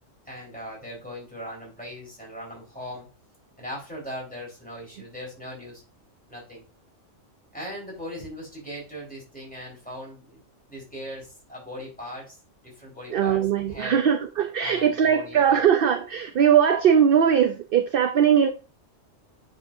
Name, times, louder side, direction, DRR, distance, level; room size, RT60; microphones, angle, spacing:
voice 1, 0.2-3.1 3.6-5.8 6.3-6.6 7.5-10.4 10.7-12.4 12.6-13.4 13.7-14.0 14.6-15.6, equal, 5° left, -4 dB, 4.0 m, -39 dB
voice 2, 13.1-18.5, right 8 dB, 55° right, 8 dB, 0.7 m, -20 dB
9.4 x 5.4 x 2.6 m, 0.34 s
omnidirectional pair, 1.3 m